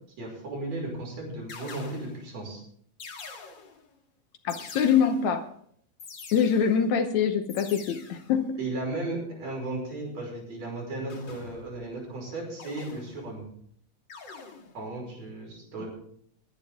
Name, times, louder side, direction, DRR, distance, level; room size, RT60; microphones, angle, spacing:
voice 1, 0.2-2.6 8.6-13.4 14.7-15.9, right 2 dB, 55° right, -1 dB, 6.6 m, -35 dB
sound 1, 0.7-1.0 1.5-2.3 3.0-3.9 4.5-5.4 6.0-6.9 7.5-8.4 11.1-11.8 12.6-13.4 14.1-14.9, left 4 dB, 40° left, 2.1 m, -45 dB
voice 2, 4.4-5.4 6.3-8.5 15.8-15.9, left 7 dB, 70° left, 7 dB, 2.1 m, -24 dB
21.5 x 10.0 x 3.7 m, 0.64 s
omnidirectional pair, 3.6 m